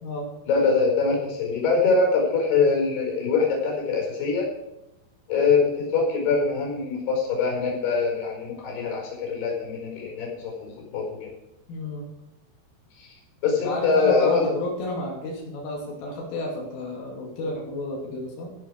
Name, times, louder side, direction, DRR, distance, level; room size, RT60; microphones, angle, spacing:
voice 1, 0.5-4.5 5.3-11.1 13.0-13.1 13.4-14.5, left 4 dB, 55° left, 0 dB, 6.7 m, -23 dB
voice 2, 11.7-12.1 13.5-18.5, left 1 dB, 90° left, -2 dB, 5.5 m, -32 dB
15.0 x 11.5 x 4.9 m, 0.95 s
omnidirectional pair, 5.6 m